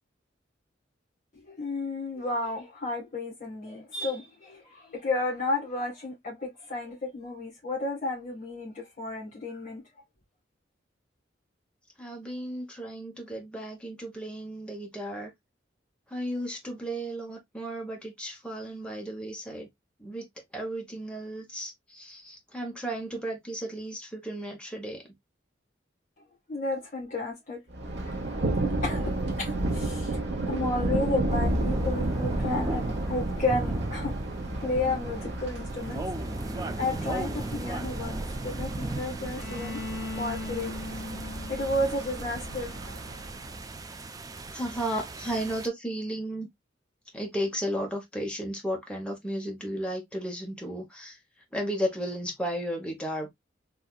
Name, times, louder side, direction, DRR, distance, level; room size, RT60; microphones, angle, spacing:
voice 1, 1.5-9.8 26.5-27.6 28.0-34.1 34.6-36.0 36.5-39.8 40.2-40.7 41.5-42.8, left 2 dB, 40° left, 1.7 m, -32 dB
voice 2, 12.0-15.3 16.1-19.7 20.0-20.3 20.5-25.0 44.5-46.5 47.1-51.2 51.5-53.3, equal, 5° left, 1.2 m, -34 dB
Thunder, 27.7-43.6, right 1 dB, 65° right, 1.1 m, -32 dB
sound 1, 31.3-45.7, right 2 dB, 20° right, 0.3 m, -37 dB
Bowed string instrument, 39.3-43.2, left 3 dB, 70° left, 2.1 m, -40 dB
4.1 x 2.6 x 2.4 m
head